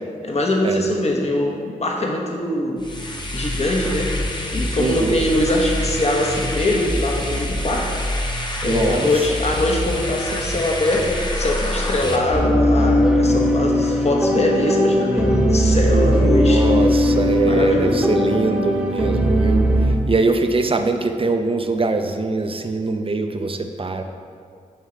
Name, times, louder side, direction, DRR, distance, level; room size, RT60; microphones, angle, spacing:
voice 1, 0.2-2.8 3.3-4.1 4.5-7.9 8.6-16.6 17.4-18.0, left 1 dB, 50° left, 0 dB, 1.1 m, -22 dB
sound 1, 2.8-12.2, left 1 dB, 30° left, 1.1 m, -26 dB
voice 2, 4.8-5.2 8.6-9.1 15.9-19.6 20.1-24.0, right 3 dB, 40° right, 6 dB, 0.6 m, -22 dB
sound 2, 12.3-20.0, equal, 5° right, 1.1 m, -18 dB
10.0 x 3.7 x 4.5 m, 2.3 s
cardioid pair, 50°, 15 cm